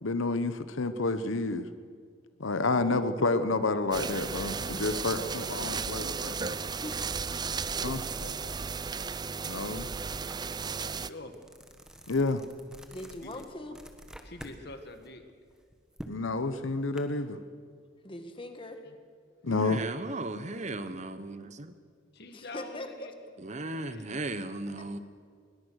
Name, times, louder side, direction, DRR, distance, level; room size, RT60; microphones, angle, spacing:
voice 1, 0.0-1.7 2.4-5.2 5.5-6.5 7.8-8.0 9.4-9.9 12.1-12.4 16.1-17.4 19.4-19.8, left 3 dB, 85° left, 11 dB, 1.0 m, -29 dB
voice 2, 2.7-3.1 6.2-6.4 6.8-6.9 12.9-13.7 18.0-18.8 22.3-22.9, left 1 dB, 25° left, 6 dB, 1.8 m, -41 dB
sound 1, 3.9-11.1, right 5 dB, 20° right, 0.4 m, -34 dB
voice 3, 4.7-5.8 8.0-8.6 10.8-11.3 13.2-13.4 14.2-15.2 18.9-19.0 22.1-23.1 23.5-24.2, left 2 dB, 55° left, 7 dB, 1.9 m, -45 dB
sound 2, 10.3-10.4 10.8-14.6 14.9-17.0, right 1 dB, 5° right, 1.4 m, -48 dB
voice 4, 19.5-21.7 23.4-25.0, right 2 dB, 35° right, 11 dB, 0.9 m, -36 dB
21.0 x 20.5 x 6.5 m, 2.2 s
head